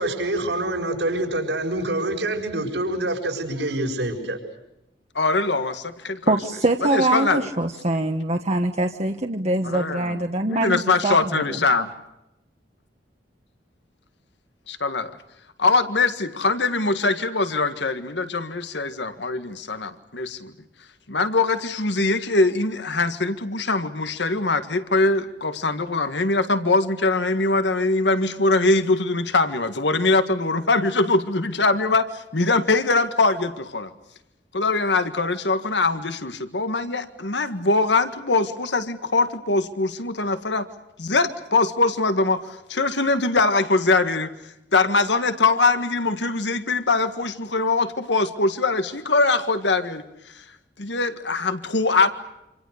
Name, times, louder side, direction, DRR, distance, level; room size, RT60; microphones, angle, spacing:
voice 1, 0.0-4.4, right 1 dB, 90° right, 1 dB, 6.5 m, -26 dB
voice 2, 5.2-6.3 6.9-7.5 9.7-10.1 10.5-11.9 14.7-15.2 15.6-20.5 21.1-33.9 34.5-40.7 41.0-44.3 44.7-50.0 50.3-50.4 50.8-52.1, left 3 dB, 85° left, 10 dB, 1.8 m, -22 dB
voice 3, 6.3-11.6, right 2 dB, 40° right, 4 dB, 1.2 m, -23 dB
27.5 x 27.5 x 6.7 m, 0.91 s
head